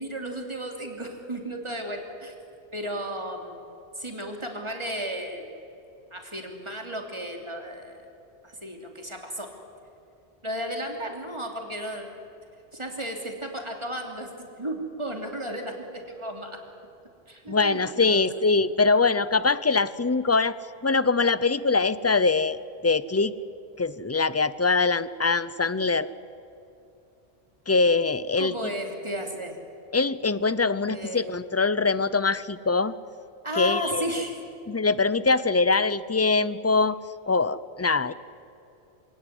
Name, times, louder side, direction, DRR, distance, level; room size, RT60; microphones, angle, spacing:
voice 1, 0.0-2.3 2.7-3.6 3.9-5.5 6.1-8.0 8.4-9.5 10.4-12.1 12.7-16.6 17.3-18.2 28.4-29.6 30.9-31.4 33.4-34.4, equal, 25° right, 2 dB, 3.2 m, -34 dB
voice 2, 17.5-20.5 20.8-22.6 22.8-23.3 23.8-26.1 27.7-28.5 29.9-32.9 33.6-34.1 34.7-37.0 37.3-38.1, left 4 dB, 25° left, 16 dB, 0.4 m, -23 dB
27.0 x 17.5 x 9.9 m, 2.8 s
omnidirectional pair, 1.1 m